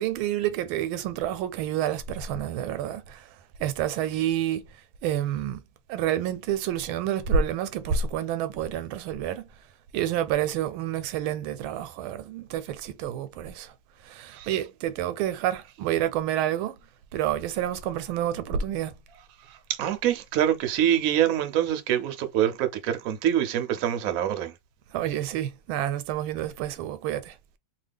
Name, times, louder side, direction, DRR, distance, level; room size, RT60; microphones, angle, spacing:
voice 1, 0.0-3.3 3.6-4.7 5.0-5.6 5.9-9.5 9.9-13.7 14.0-16.8 17.1-18.9 24.9-27.6, right 10 dB, 85° right, 1.4 m, -29 dB
voice 2, 19.5-24.5, right 10 dB, 70° right, 0.8 m, -25 dB
3.1 x 2.3 x 3.4 m
omnidirectional pair, 2.2 m